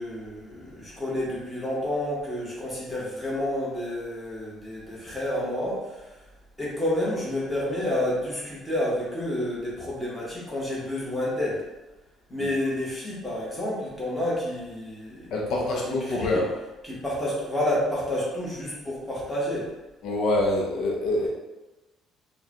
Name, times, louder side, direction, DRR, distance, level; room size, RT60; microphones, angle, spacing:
voice 1, 0.0-6.0 6.6-11.6 12.3-16.5 16.8-19.7, left 1 dB, 5° left, -7 dB, 1.1 m, -29 dB
voice 2, 15.3-16.5 20.0-21.3, left 2 dB, 60° left, -1 dB, 0.6 m, -25 dB
4.7 x 2.2 x 2.9 m, 1.1 s
cardioid pair, 155°, 0 cm